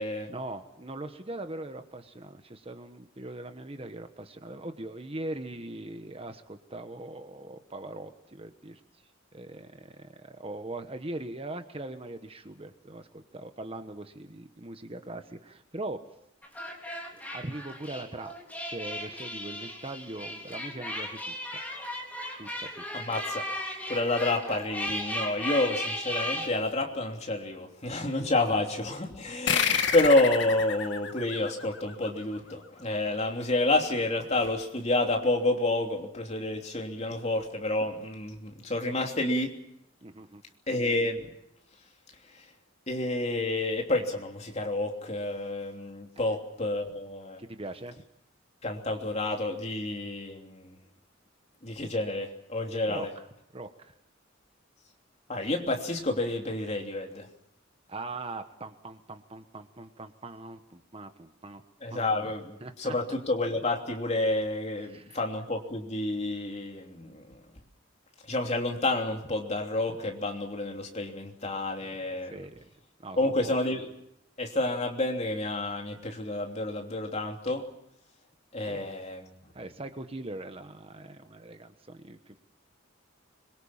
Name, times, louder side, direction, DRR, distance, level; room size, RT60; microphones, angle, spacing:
voice 1, 0.3-8.8 9.3-16.0 17.1-18.3 18.6-21.6 22.4-22.8 40.0-40.4 46.1-46.2 47.4-48.0 52.9-53.3 53.5-53.9 57.9-61.6 61.9-62.3 62.6-62.9 64.8-65.2 72.1-72.6 73.0-73.5 78.7-78.9 79.5-82.4, right 2 dB, 30° right, 8 dB, 1.2 m, -41 dB
sound 1, 16.4-26.5, left 1 dB, 10° left, 4.1 m, -36 dB
voice 2, 22.9-23.4 23.9-39.5 40.7-41.2 42.4-42.5 42.9-47.4 48.6-50.8 51.6-53.1 55.3-57.3 61.8-67.4 68.3-72.5 73.2-73.9 74.4-77.6 78.5-79.3, left 2 dB, 35° left, 2 dB, 3.1 m, -29 dB
sound 2, 29.5-32.5, left 7 dB, 60° left, 1.9 m, -29 dB
25.5 x 23.0 x 7.3 m, 0.78 s
head